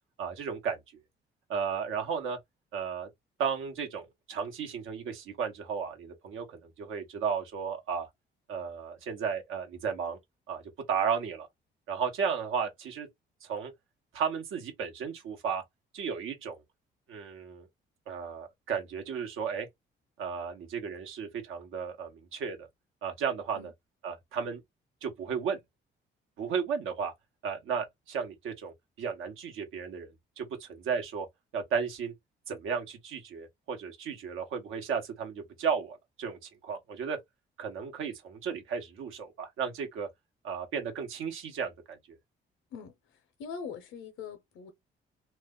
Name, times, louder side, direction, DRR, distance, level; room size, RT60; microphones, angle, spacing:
voice 1, 0.2-0.8 1.5-2.4 2.7-3.1 3.4-8.1 8.5-10.2 10.5-10.6 10.9-11.5 11.9-13.1 13.4-13.7 14.1-15.6 15.9-16.6 17.1-17.7 18.1-19.7 20.2-22.7 23.0-23.7 24.0-24.6 25.0-25.6 26.4-27.1 27.4-30.1 30.4-31.3 31.5-32.1 32.5-37.2 37.6-40.1 40.4-42.0, right 6 dB, 85° right, 1.0 m, -34 dB
voice 2, 42.7-44.7, left 6 dB, 80° left, 0.6 m, -43 dB
2.4 x 2.2 x 3.6 m
cardioid pair, 90°, 20 cm